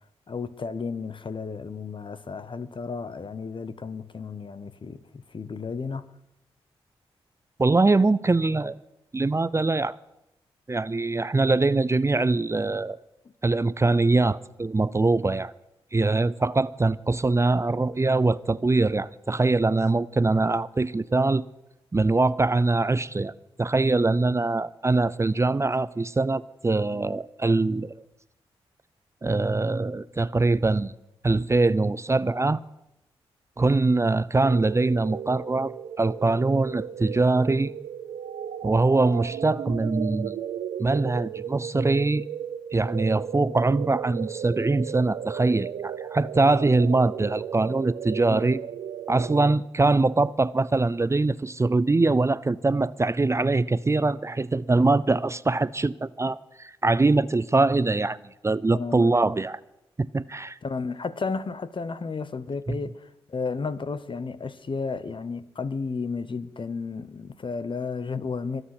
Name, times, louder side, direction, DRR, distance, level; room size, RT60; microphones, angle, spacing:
voice 1, 0.3-6.1 48.3-48.6 58.7-59.1 60.6-68.6, left 4 dB, 50° left, 1.0 m, -33 dB
voice 2, 7.6-8.8 9.1-10.0 10.7-13.0 13.4-15.5 15.9-21.4 21.9-23.3 23.6-28.0 29.2-30.9 31.2-32.6 33.6-37.7 38.6-40.4 40.8-42.2 42.7-48.6 49.1-58.2 58.4-59.6 60.1-60.6 62.7-62.8, right 3 dB, 25° right, 0.5 m, -23 dB
sound 1, 34.4-49.5, right 9 dB, 80° right, 0.6 m, -35 dB
22.5 x 8.0 x 6.0 m
supercardioid pair, 40°, 11 cm